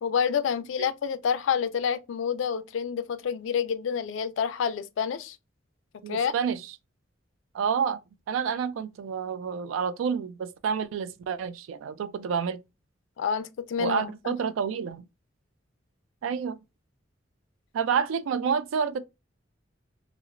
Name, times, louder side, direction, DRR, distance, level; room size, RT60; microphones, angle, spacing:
voice 1, 0.0-5.4 6.1-6.3 13.2-14.4, left 7 dB, 70° left, 0.3 m, -28 dB
voice 2, 6.0-6.6 7.5-8.0 8.3-12.6 13.8-15.0 16.2-16.6 17.7-19.0, right 6 dB, 90° right, 0.3 m, -29 dB
2.8 x 2.0 x 2.4 m
head